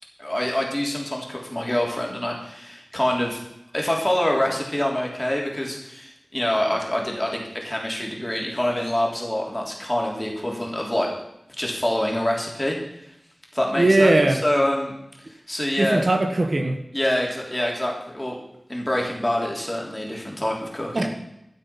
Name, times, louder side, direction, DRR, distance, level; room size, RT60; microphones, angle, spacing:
voice 1, 0.2-3.4 3.7-11.1 11.6-12.8 13.5-14.1 14.4-14.9 15.5-16.0 16.9-18.4 18.7-21.1, left 1 dB, 20° left, -1 dB, 3.4 m, -25 dB
voice 2, 13.7-14.4 15.8-16.8 20.9-21.1, right 2 dB, 55° right, 4 dB, 1.5 m, -19 dB
13.5 x 7.4 x 6.0 m, 0.82 s
wide cardioid pair, 60°, 0 cm